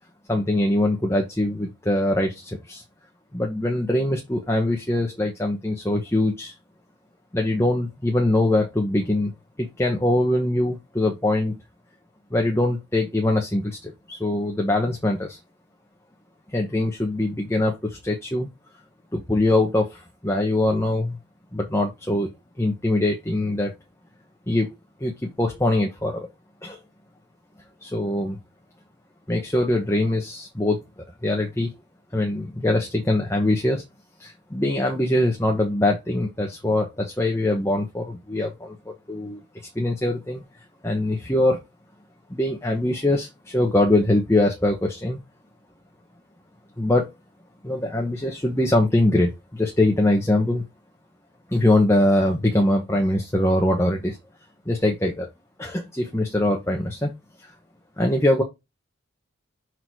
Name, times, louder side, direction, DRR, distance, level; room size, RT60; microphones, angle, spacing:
voice 1, 0.3-2.8 3.3-6.5 7.3-9.3 9.6-11.6 12.3-15.4 16.5-18.5 19.1-21.2 21.5-22.3 22.6-23.7 24.5-24.7 25.0-26.3 26.6-26.8 27.8-28.4 29.3-30.8 31.2-31.7 32.1-33.8 34.2-40.4 40.8-41.6 42.3-45.2 46.8-47.1 47.6-50.6 51.5-54.2 54.7-55.3 55.6-57.1 57.4-57.5 58.0-58.4, left 1 dB, 15° left, 1 dB, 1.0 m, -23 dB
6.1 x 3.8 x 4.6 m, 0.21 s
head